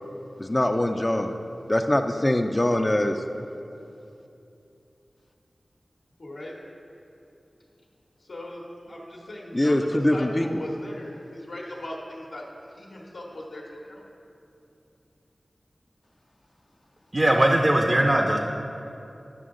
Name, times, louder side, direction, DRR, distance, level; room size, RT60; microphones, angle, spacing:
voice 1, 0.4-1.3 1.7-3.2 9.5-10.6, left 1 dB, 25° left, 5 dB, 0.4 m, -23 dB
voice 2, 6.2-6.5 8.2-12.4 12.7-14.0, left 1 dB, 80° left, -5 dB, 1.3 m, -39 dB
voice 3, 17.1-18.4, right 1 dB, 35° right, 1 dB, 0.6 m, -20 dB
11.0 x 6.1 x 3.8 m, 2.7 s
wide cardioid pair, 70°, 0 cm